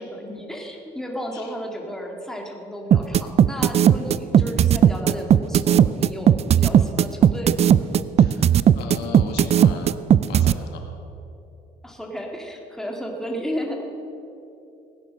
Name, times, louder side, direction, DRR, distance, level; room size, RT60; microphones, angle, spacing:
voice 1, 0.0-7.9 11.8-13.8, equal, 5° left, 0 dB, 2.1 m, -33 dB
sound 1, 2.9-10.5, right 9 dB, 40° right, 0.4 m, -15 dB
voice 2, 8.2-10.8, left 5 dB, 85° left, 3 dB, 2.0 m, -37 dB
17.5 x 9.5 x 6.4 m, 2.8 s
cardioid pair, 110°, 17 cm